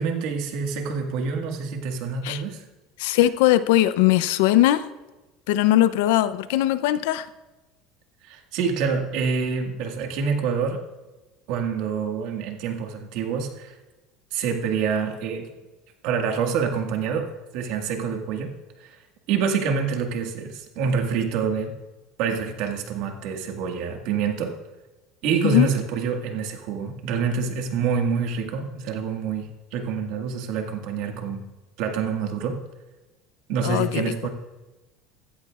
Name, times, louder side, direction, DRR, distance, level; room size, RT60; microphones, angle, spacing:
voice 1, 0.0-2.6 8.3-10.8 11.5-13.8 14.3-15.5 16.0-18.5 18.8-19.0 19.3-21.7 22.2-24.5 25.2-31.4 31.8-32.6 33.5-34.3, right 6 dB, 65° right, 3 dB, 1.8 m, -26 dB
voice 2, 3.0-4.8 5.5-7.3 25.4-25.7 33.6-34.0, left 14 dB, 80° left, 14 dB, 0.6 m, -20 dB
15.0 x 13.5 x 2.4 m, 1.1 s
cardioid pair, 135°, 0 cm